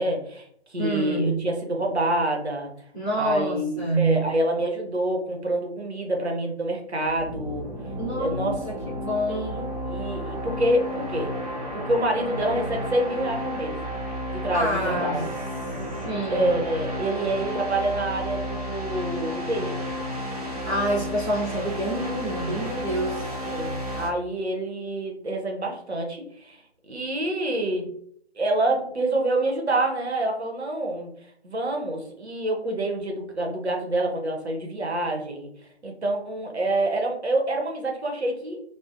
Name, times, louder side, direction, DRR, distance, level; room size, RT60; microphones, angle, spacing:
voice 1, 0.0-2.7 3.2-7.7 8.1-8.6 9.3-11.3 11.7-13.8 14.3-15.2 16.3-19.8 23.5-27.9 28.4-31.1 31.4-35.5 35.8-38.6, right 1 dB, 75° right, 2 dB, 0.7 m, -27 dB
voice 2, 0.8-1.4 2.9-4.3 7.9-9.6 14.5-15.2 15.9-16.5 20.5-23.3, right 1 dB, 10° left, -16 dB, 0.7 m, -27 dB
sound 1, 7.0-24.1, equal, 35° right, 0.6 m, -32 dB
2.6 x 2.0 x 2.3 m, 0.65 s
figure-of-eight pair, 150°, 33 cm